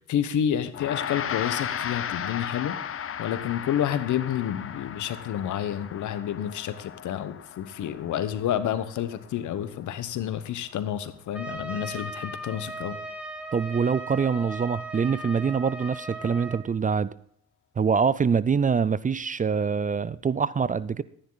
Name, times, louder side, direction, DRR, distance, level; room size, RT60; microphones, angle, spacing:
voice 1, 0.1-2.8 3.2-13.0, left 10 dB, 75° left, 1.2 m, -29 dB
Gong, 0.7-10.3, left 8 dB, 45° left, 0.8 m, -36 dB
Trumpet, 11.3-16.6, right 1 dB, 5° right, 2.1 m, -38 dB
voice 2, 13.5-17.1 17.8-21.0, right 6 dB, 25° right, 0.4 m, -25 dB
13.0 x 10.0 x 4.0 m
cardioid pair, 90°, 30 cm